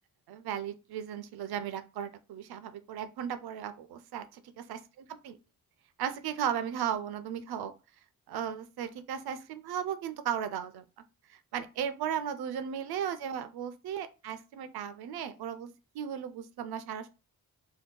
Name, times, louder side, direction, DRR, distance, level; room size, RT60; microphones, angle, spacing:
voice 1, 0.3-4.8 5.2-5.4 6.0-7.7 8.3-10.8 11.3-17.1, right 9 dB, 85° right, 0.5 m, -36 dB
2.7 x 2.2 x 3.6 m
cardioid pair, 80°, 37 cm